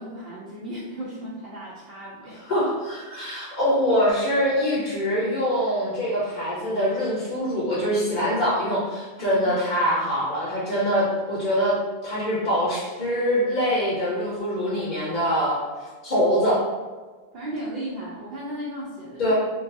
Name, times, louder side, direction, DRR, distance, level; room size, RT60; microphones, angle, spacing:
voice 1, 0.0-2.4 9.2-9.5 17.3-19.3, right 1 dB, 65° right, -7 dB, 0.8 m, -35 dB
voice 2, 2.5-11.7 12.0-16.6 19.2-19.3, equal, 50° left, -8 dB, 0.7 m, -24 dB
2.6 x 2.2 x 2.5 m, 1.4 s
omnidirectional pair, 1.1 m